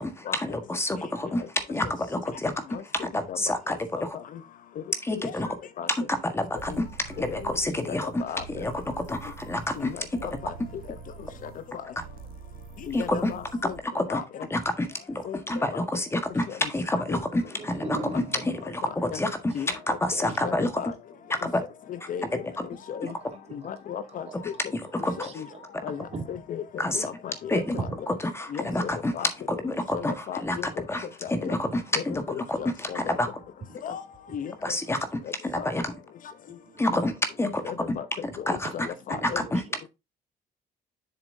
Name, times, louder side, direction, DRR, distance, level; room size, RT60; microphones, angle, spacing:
voice 1, 0.0-1.4 1.7-4.1 5.0-5.5 6.1-8.2 8.5-9.9 12.9-13.3 13.9-14.2 14.5-20.7 21.4-21.6 22.6-22.7 24.7-25.3 26.8-27.1 27.5-27.8 28.2-29.1 29.5-32.2 32.5-33.3 34.6-35.0 35.4-35.9 36.8-37.1 37.4-37.6 38.5-38.7 39.2-39.6, left 1 dB, 15° left, 1.5 m, -28 dB
sound 1, 6.6-13.8, right 5 dB, 60° right, 1.2 m, -45 dB
voice 2, 7.9-8.6 9.8-10.5 11.4-11.5 12.9-13.8 14.1-14.2 15.2-15.4 15.7-15.8 16.5-16.7 17.1-17.2 18.8-19.2 19.5-20.0 20.4-20.9 22.1-22.2 22.9-23.1 23.5-24.5 25.2-25.5 25.8-27.9 28.5-29.3 29.9-30.7 31.2-31.6 31.9-33.2 33.8-34.0 34.3-34.5 35.6-35.7 37.6-38.1 38.5-39.4, left 8 dB, 50° left, 0.8 m, -35 dB
voice 3, 17.6-18.5 19.5-19.6 23.0-23.6 24.3-24.5 25.2-26.2 26.9-27.0 27.7-27.9 31.6-31.7 33.0-33.3 36.6-37.1 37.8-37.9 38.6-39.9, right 3 dB, 40° right, 2.4 m, -39 dB
7.2 x 6.9 x 2.7 m
cardioid pair, 110°, 17 cm